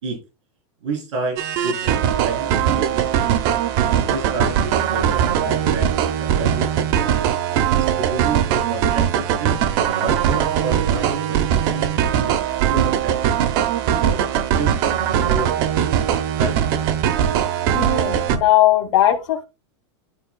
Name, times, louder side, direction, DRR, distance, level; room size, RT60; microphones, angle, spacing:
voice 1, 0.8-3.1 3.8-7.2 7.7-11.9 12.1-13.4 14.0-14.2 14.6-14.7 15.3-15.5 16.2-16.8, right 3 dB, 85° right, 1 dB, 3.8 m, -30 dB
sound 1, 1.4-18.4, right 9 dB, 50° right, 0.8 m, -20 dB
voice 2, 17.7-19.4, left 13 dB, 70° left, -1 dB, 1.3 m, -18 dB
12.0 x 4.3 x 2.3 m, 0.28 s
supercardioid pair, 150°, 15 cm